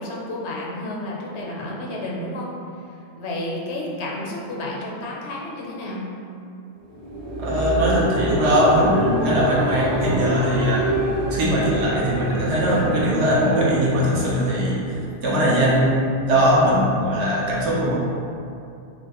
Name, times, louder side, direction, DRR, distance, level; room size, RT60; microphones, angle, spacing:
voice 1, 0.0-2.5 3.2-6.0, left 1 dB, 80° left, -3 dB, 0.9 m, -31 dB
sound 1, 6.8-15.4, right 1 dB, 50° right, 0.9 m, -27 dB
voice 2, 7.4-10.9 11.3-15.0 15.2-17.9, equal, 80° right, -6 dB, 1.0 m, -20 dB
3.0 x 2.7 x 2.8 m, 2.6 s
omnidirectional pair, 1.1 m